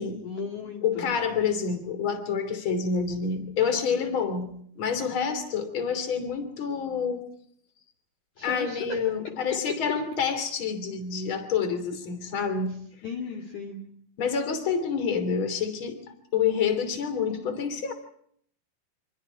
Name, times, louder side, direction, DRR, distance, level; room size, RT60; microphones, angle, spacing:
voice 1, 0.2-1.1 8.4-9.4 13.0-13.8, left 5 dB, 50° left, 1 dB, 3.0 m, -36 dB
voice 2, 0.8-4.5 4.7-7.2 8.4-12.8 14.2-16.0 16.3-17.9, left 6 dB, 30° left, 8 dB, 3.2 m, -28 dB
29.5 x 26.5 x 4.7 m, 0.67 s
omnidirectional pair, 5.4 m